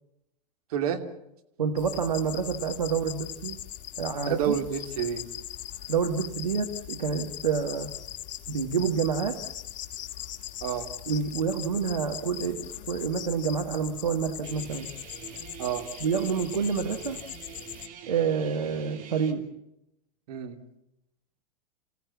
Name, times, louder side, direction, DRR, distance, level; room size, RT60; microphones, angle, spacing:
voice 1, 1.6-3.6 4.0-4.6 5.9-7.9 8.5-9.4 11.1-14.9 16.0-17.2 18.1-19.5, right 6 dB, 85° right, 6 dB, 1.9 m, -28 dB
sound 1, 1.8-17.9, left 12 dB, 40° left, 1.8 m, -40 dB
voice 2, 4.3-5.2 10.6-10.9 15.6-15.8 20.3-20.6, right 8 dB, 65° right, 5 dB, 2.9 m, -29 dB
Guitar, 14.4-19.3, right 7 dB, 40° right, 3.0 m, -45 dB
28.5 x 16.0 x 8.4 m, 0.85 s
hypercardioid pair, 95°, 21 cm